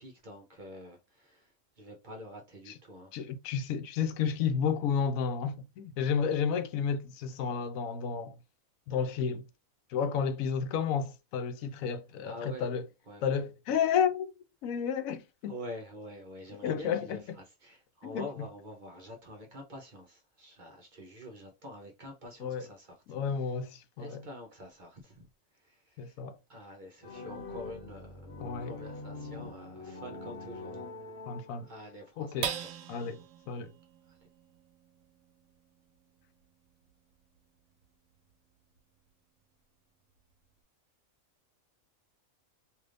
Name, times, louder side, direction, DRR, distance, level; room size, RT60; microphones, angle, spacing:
voice 1, 0.0-3.1 12.2-12.7 13.1-13.2 15.5-23.0 23.4-23.5 24.0-25.3 25.5-26.2 26.5-28.3 28.6-30.8 31.6-32.7 34.1-34.2, equal, 45° right, 0.7 m, -46 dB
voice 2, 3.1-8.4 8.9-9.5 9.9-12.9 13.2-14.4 14.6-15.5 16.6-17.2 18.0-18.3 22.4-22.7 23.1-24.3 26.0-26.4 28.4-28.8 31.3-31.7 32.2-32.5 32.9-33.2 33.5-33.7, left 7 dB, 85° left, 1.0 m, -31 dB
sound 1, 27.0-32.0, left 3 dB, 55° left, 1.0 m, -44 dB
sound 2, 32.4-39.1 39.6-39.7 40.1-40.6, right 8 dB, 75° right, 0.9 m, -44 dB
3.3 x 2.7 x 2.5 m
omnidirectional pair, 1.4 m